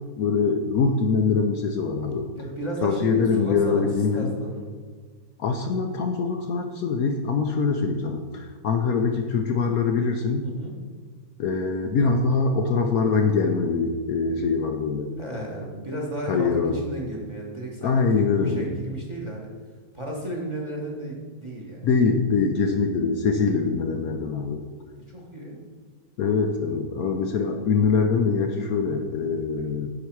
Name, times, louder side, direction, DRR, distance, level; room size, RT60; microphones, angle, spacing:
voice 1, 0.0-2.3 2.8-4.3 5.4-10.5 11.4-15.1 16.3-16.8 17.8-18.7 21.8-24.6 26.2-29.9, left 5 dB, 65° left, 4 dB, 1.0 m, -23 dB
voice 2, 2.3-3.8 4.1-4.6 10.4-10.7 15.2-19.5 19.9-21.9 25.1-25.6, right 1 dB, 20° right, -1 dB, 1.2 m, -34 dB
10.0 x 4.8 x 4.6 m, 1.5 s
omnidirectional pair, 1.8 m